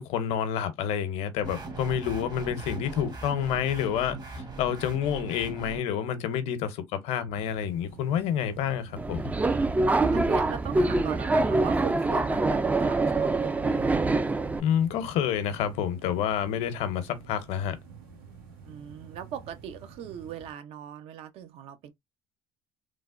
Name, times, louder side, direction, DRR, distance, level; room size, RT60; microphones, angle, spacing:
voice 1, 0.0-9.3 14.6-17.8, left 9 dB, 70° left, 0.7 m, -29 dB
sound 1, 1.4-5.8, right 3 dB, 35° right, 1.0 m, -39 dB
sound 2, 7.3-20.5, right 5 dB, 90° right, 1.2 m, -49 dB
Subway metro underground, 9.0-14.6, right 2 dB, 15° right, 0.3 m, -25 dB
voice 2, 10.1-14.1 18.6-21.9, right 9 dB, 60° right, 0.6 m, -40 dB
3.3 x 2.0 x 2.4 m
hypercardioid pair, 70°, 11 cm